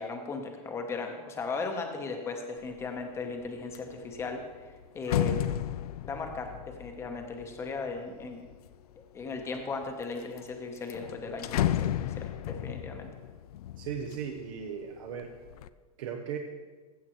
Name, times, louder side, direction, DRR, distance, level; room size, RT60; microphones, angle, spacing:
voice 1, 0.0-5.4 6.0-6.5 6.8-8.5 9.1-13.1, left 4 dB, 15° left, 4 dB, 1.0 m, -37 dB
sound 1, 2.7-3.0 3.4-8.7 9.4-10.0 10.4-10.5 10.8-14.7 15.1-15.7, left 11 dB, 75° left, 0.4 m, -34 dB
voice 2, 13.8-15.3 16.0-16.4, right 7 dB, 55° right, 2 dB, 0.9 m, -37 dB
15.0 x 7.2 x 3.1 m, 1.4 s
supercardioid pair, 150°, 19 cm